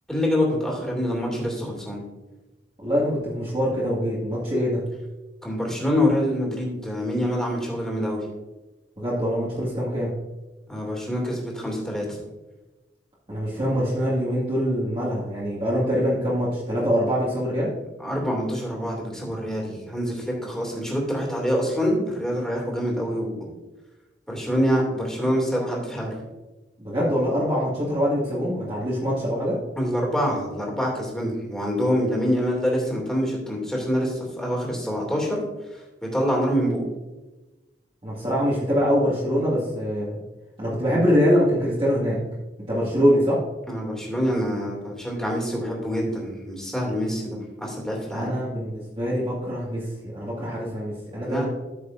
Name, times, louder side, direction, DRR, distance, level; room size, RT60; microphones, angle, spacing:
voice 1, 0.1-2.1 5.4-8.2 10.7-12.2 18.0-23.5 24.3-26.2 29.8-35.4 36.1-36.8 43.7-48.3 51.2-51.5, equal, 5° left, -2 dB, 2.6 m, -26 dB
voice 2, 2.8-4.8 9.0-10.1 13.3-17.7 26.8-29.6 38.0-40.2 40.6-42.2 42.7-43.4 48.1-51.5, equal, 30° right, -8 dB, 2.1 m, -24 dB
13.5 x 6.6 x 2.6 m, 1.1 s
head